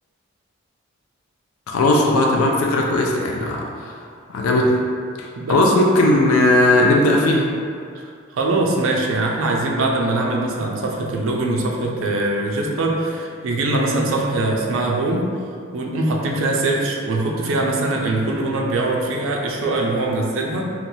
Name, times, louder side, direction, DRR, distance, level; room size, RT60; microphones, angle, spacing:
voice 1, 1.7-3.9 4.3-4.8 5.2-7.5, left 1 dB, 90° left, -1 dB, 0.4 m, -17 dB
voice 2, 5.4-5.7 8.3-15.5 15.7-20.7, right 2 dB, 65° right, 0 dB, 0.4 m, -22 dB
2.9 x 2.2 x 2.6 m, 2.2 s
head